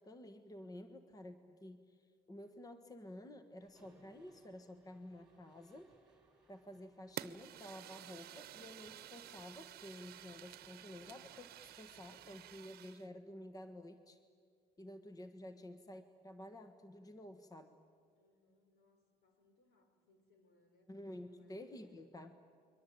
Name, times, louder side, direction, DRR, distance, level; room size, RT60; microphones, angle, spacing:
voice 1, 0.0-5.9 6.5-14.2 14.8-17.8 20.9-22.3, left 1 dB, 20° left, 9 dB, 1.4 m, -52 dB
Mechanisms, 3.6-12.6, right 2 dB, 5° right, 5.2 m, -69 dB
Fire, 7.2-13.1, right 12 dB, 65° right, 0.9 m, -51 dB
voice 2, 15.4-15.8 18.1-22.0, left 2 dB, 75° left, 5 dB, 5.5 m, -73 dB
29.5 x 23.0 x 8.7 m, 2.2 s
cardioid pair, 110°, 17 cm